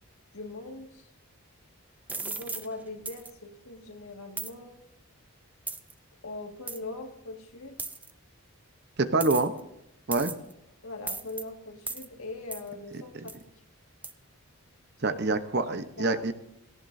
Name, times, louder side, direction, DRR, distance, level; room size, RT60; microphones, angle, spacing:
voice 1, 0.3-1.1 2.2-4.8 6.2-7.8 10.8-13.3 15.0-15.2 16.0-16.3, left 2 dB, 70° left, 3 dB, 2.0 m, -41 dB
sound 1, 2.1-2.7 3.1-3.3 4.4-4.5 5.7-5.9 6.7-6.8 7.8-8.1 9.2-9.6 10.1-10.5 11.1-11.4 11.9-12.1 12.5-12.7 13.3-13.4 14.0-14.1, right 3 dB, 5° right, 0.5 m, -36 dB
voice 2, 9.0-9.5 10.1-10.3 15.0-16.3, right 3 dB, 45° right, 10 dB, 0.9 m, -26 dB
18.0 x 17.0 x 2.7 m, 0.85 s
head